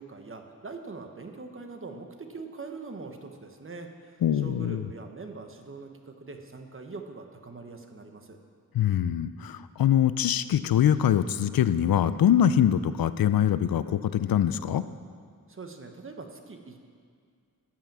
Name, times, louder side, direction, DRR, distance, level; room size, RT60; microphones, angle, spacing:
voice 1, 0.0-8.4 15.5-16.9, right 4 dB, 35° right, 5 dB, 1.0 m, -42 dB
voice 2, 4.2-4.9 8.7-14.8, left 10 dB, 85° left, 14 dB, 0.5 m, -23 dB
13.0 x 5.9 x 7.3 m, 2.1 s
wide cardioid pair, 115°, 34 cm